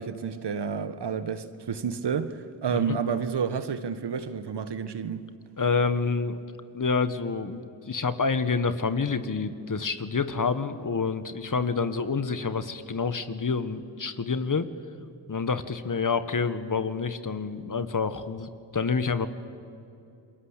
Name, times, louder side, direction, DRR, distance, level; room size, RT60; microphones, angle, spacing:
voice 1, 0.0-5.3, right 6 dB, 55° right, 1.6 m, -30 dB
voice 2, 5.6-6.4 6.7-14.7 15.3-19.3, left 5 dB, 40° left, 1.8 m, -28 dB
28.5 x 22.0 x 8.4 m
supercardioid pair, 40°, 47 cm